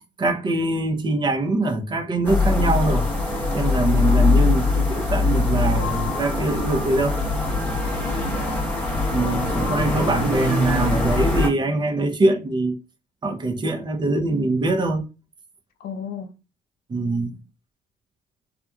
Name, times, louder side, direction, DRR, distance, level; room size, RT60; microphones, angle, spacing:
voice 1, 0.2-3.1 3.5-7.1 9.1-12.8 13.2-15.0 16.9-17.4, right 2 dB, 25° right, 0.6 m, -23 dB
sound 1, 2.2-11.5, left 3 dB, 10° left, 0.9 m, -22 dB
voice 2, 3.9-4.5 8.0-8.6 9.2-10.2 15.8-16.3, left 7 dB, 60° left, 0.4 m, -36 dB
2.9 x 2.3 x 2.3 m
cardioid pair, 110°, 17 cm